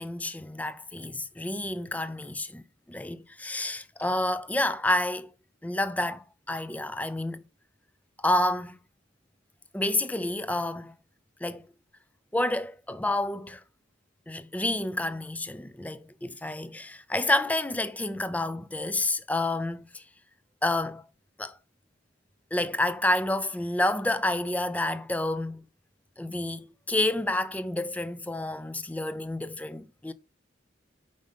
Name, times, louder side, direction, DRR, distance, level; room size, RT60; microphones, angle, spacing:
voice 1, 0.0-2.6 2.9-5.3 5.6-7.4 8.2-8.8 9.7-10.9 11.4-11.7 12.3-13.6 14.3-20.0 20.6-21.0 21.4-21.6 22.5-25.6 26.2-30.1, left 1 dB, 10° left, 0.4 m, -29 dB
5.2 x 5.0 x 5.5 m
head